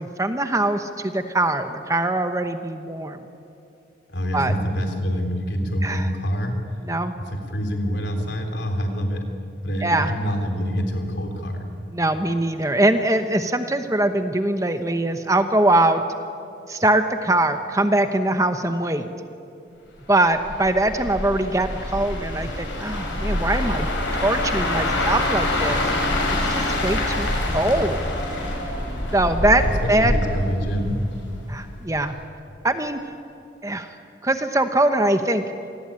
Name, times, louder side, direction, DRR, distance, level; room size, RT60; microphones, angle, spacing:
voice 1, 0.0-3.2 4.3-4.5 5.8-6.1 6.8-7.1 9.8-10.1 11.9-16.0 16.7-19.1 20.1-23.9 24.2-25.8 26.5-28.1 29.1-30.1 31.5-32.2 32.6-33.0 33.6-34.0 34.2-35.4, right 1 dB, 15° right, 8 dB, 1.0 m, -22 dB
voice 2, 4.1-6.5 7.3-9.3 9.6-11.7 29.8-31.0, equal, 65° left, 4 dB, 3.7 m, -26 dB
sound 1, 20.3-31.4 31.8-32.1, left 1 dB, 85° left, 6.8 m, -25 dB
27.5 x 19.5 x 8.8 m, 2.7 s
head